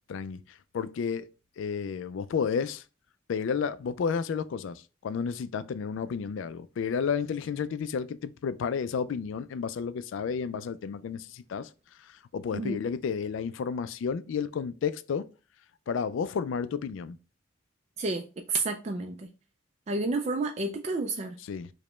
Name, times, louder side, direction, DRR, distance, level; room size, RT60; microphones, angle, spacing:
voice 1, 0.1-1.3 1.6-2.8 3.3-11.7 12.0-15.3 15.9-17.2 21.5-21.7, left 6 dB, 70° left, 0.3 m, -31 dB
voice 2, 18.0-19.3 19.9-21.4, right 3 dB, 35° right, 0.3 m, -30 dB
4.9 x 2.1 x 3.1 m
head